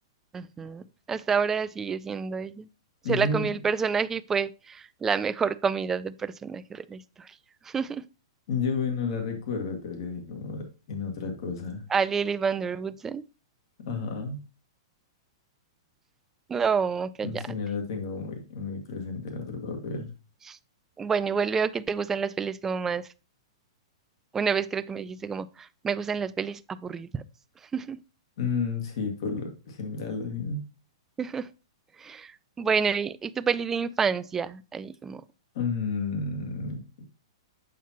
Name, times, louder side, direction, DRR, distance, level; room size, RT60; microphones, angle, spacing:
voice 1, 0.3-2.7 3.1-7.0 7.7-8.0 11.9-13.2 16.5-17.4 20.5-20.6 21.0-23.1 24.3-27.2 27.7-28.0 31.2-31.5 32.0-32.3 32.6-35.2, right 6 dB, 15° right, 0.3 m, -28 dB
voice 2, 3.0-3.5 8.5-11.8 13.8-14.4 17.2-20.1 28.4-30.6 35.5-37.0, left 4 dB, 60° left, 2.0 m, -31 dB
7.3 x 5.9 x 2.9 m
hypercardioid pair, 135°, 3 cm